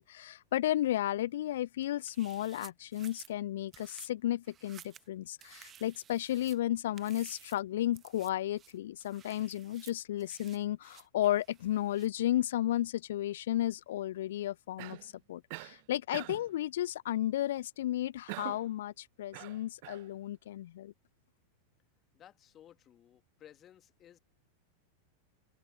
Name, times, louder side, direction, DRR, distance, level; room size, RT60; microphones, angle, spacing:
voice 1, 0.0-20.9, left 13 dB, 60° left, 0.3 m, -33 dB
sound 1, 2.0-3.3 3.7-4.1 4.4-5.1 5.4-6.6 7.0-7.6 7.9-8.3 8.6-12.1, right 9 dB, 25° right, 1.6 m, -55 dB
Cough, 14.8-15.1 15.5-15.8 16.1-16.5 18.3-18.7 19.3-20.1, right 29 dB, 45° right, 1.3 m, -44 dB
voice 2, 22.1-24.2, left 11 dB, 30° left, 2.6 m, -57 dB
open air
figure-of-eight pair, 90°, 0 cm